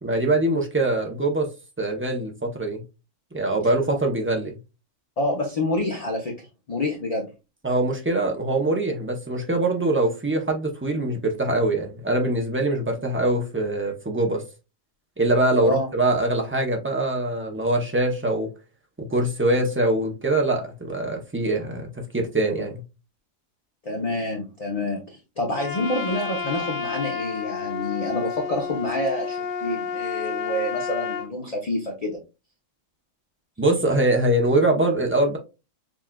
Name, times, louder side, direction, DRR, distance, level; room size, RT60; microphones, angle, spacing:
voice 1, 0.0-1.5 1.8-2.8 3.3-4.5 7.6-14.4 15.2-18.5 19.0-22.8 33.6-35.4, right 2 dB, 15° right, 0.5 m, -23 dB
voice 2, 5.2-6.3 6.7-7.3 15.6-15.9 22.4-22.6 23.8-32.2, left 1 dB, 40° left, 0.6 m, -28 dB
Trumpet, 25.5-31.3, left 6 dB, 85° left, 1.0 m, -30 dB
6.0 x 2.4 x 2.2 m
omnidirectional pair, 1.3 m